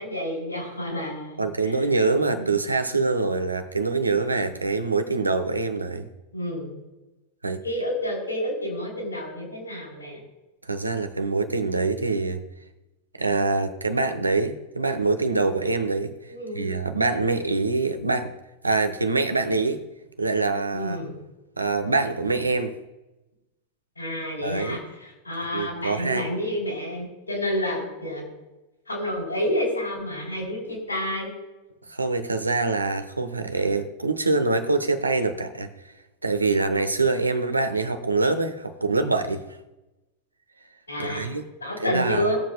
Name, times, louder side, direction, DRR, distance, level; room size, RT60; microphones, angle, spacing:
voice 1, 0.0-1.9 2.2-2.5 4.2-4.3 6.3-6.7 7.6-10.2 16.3-16.7 20.7-21.1 24.0-28.2 28.9-31.3 40.9-41.3 41.6-42.4, left 1 dB, 85° left, -3 dB, 3.7 m, -29 dB
voice 2, 1.4-6.1 7.4-7.6 10.7-12.4 13.2-18.3 18.6-19.8 20.2-21.0 21.6-22.7 24.4-24.8 25.5-26.3 31.9-35.7 36.2-39.4 41.0-41.5 41.8-42.3, right 3 dB, 80° right, 8 dB, 0.9 m, -25 dB
19.5 x 7.3 x 2.3 m, 1.0 s
figure-of-eight pair, 90°, 0 cm